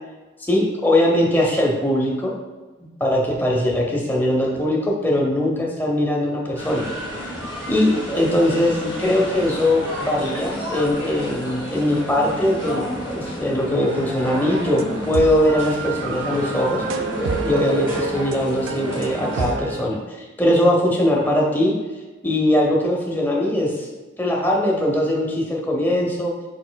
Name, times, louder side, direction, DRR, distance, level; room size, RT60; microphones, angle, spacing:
voice 1, 0.4-2.3 3.0-6.9 7.7-12.8 13.1-16.8 17.4-21.7 22.2-23.9 24.2-26.3, left 1 dB, 10° left, -1 dB, 0.6 m, -21 dB
sound 1, 6.6-19.5, equal, 10° right, 1.5 m, -31 dB
sound 2, 13.8-19.8, right 4 dB, 90° right, 0.4 m, -29 dB
5.2 x 4.1 x 2.2 m, 1.3 s
head